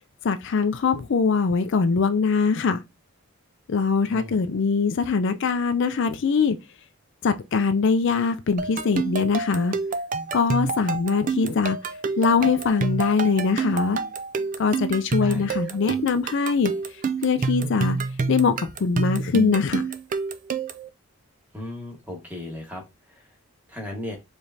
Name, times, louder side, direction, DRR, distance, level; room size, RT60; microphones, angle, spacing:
voice 1, 0.2-2.8 3.7-6.6 7.2-9.7 10.3-11.8 12.2-14.0 14.6-16.7 17.2-18.0 18.3-19.8, left 5 dB, 55° left, 0.4 m, -22 dB
sound 1, 8.6-20.9, right 4 dB, 40° right, 0.4 m, -28 dB
voice 2, 15.2-15.8 21.5-22.8 23.1-23.3 23.7-24.2, left 1 dB, 10° right, 1.5 m, -36 dB
4.9 x 3.2 x 2.7 m
head